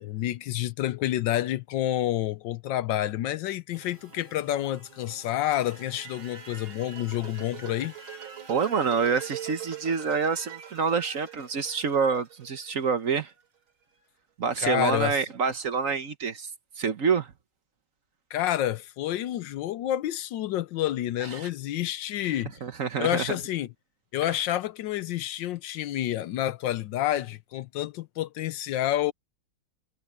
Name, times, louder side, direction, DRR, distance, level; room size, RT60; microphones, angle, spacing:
voice 1, 0.0-7.9 14.6-15.2 18.3-22.6 23.0-23.7 24.1-29.1, left 13 dB, 75° left, 1.2 m, -29 dB
sound 1, 3.7-9.7, right 2 dB, 25° right, 4.5 m, -54 dB
sound 2, 5.2-13.3, right 9 dB, 85° right, 3.7 m, -43 dB
voice 2, 8.5-13.3 14.4-16.5 16.8-17.3 21.2-21.5 22.6-23.4, right 5 dB, 50° right, 1.2 m, -27 dB
omnidirectional pair, 2.2 m